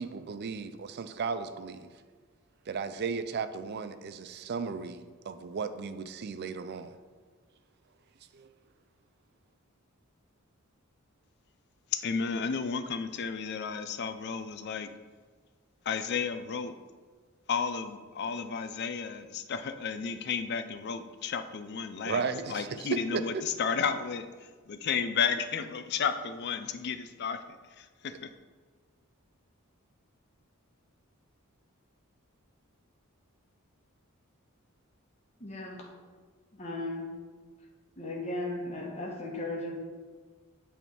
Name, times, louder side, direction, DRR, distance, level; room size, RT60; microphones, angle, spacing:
voice 1, 0.0-1.9 2.7-7.0 8.3-8.5 22.0-23.4, right 5 dB, 50° right, 11 dB, 0.4 m, -35 dB
voice 2, 11.9-14.9 15.9-16.7 17.5-28.3, left 6 dB, 50° left, 10 dB, 0.4 m, -33 dB
voice 3, 35.4-35.8 36.5-37.1 38.0-39.7, left 2 dB, 30° left, -2 dB, 1.2 m, -36 dB
8.4 x 3.5 x 4.4 m, 1.5 s
head